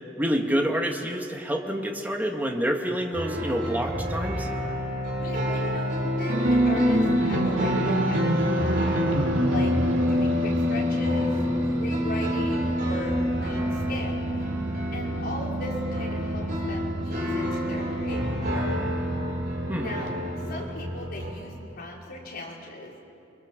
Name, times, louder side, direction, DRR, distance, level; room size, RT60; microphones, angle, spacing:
voice 1, 0.2-4.5 19.7-19.9, equal, 10° right, 2 dB, 2.0 m, -27 dB
sound 1, 3.1-21.3, equal, 45° right, 7.1 m, -30 dB
voice 2, 5.2-8.9 9.5-9.7 10.1-11.3 11.8-14.2 14.9-18.7 19.8-20.2 20.4-22.9, left 1 dB, 55° left, -3 dB, 5.1 m, -38 dB
sound 2, 6.3-20.6, equal, 90° right, 3.0 m, -27 dB
28.5 x 22.5 x 7.5 m, 2.7 s
head